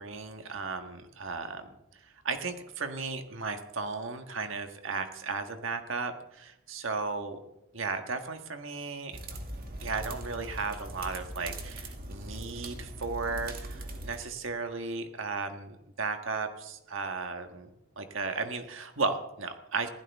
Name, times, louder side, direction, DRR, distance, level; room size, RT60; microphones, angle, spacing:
voice 1, 0.0-1.7 2.0-7.4 7.7-9.2 9.8-17.7 18.0-19.9, right 4 dB, 70° right, 6 dB, 1.5 m, -35 dB
sound 1, 9.1-14.2, right 1 dB, 45° right, 2.2 m, -41 dB
21.5 x 15.5 x 3.6 m, 0.89 s
head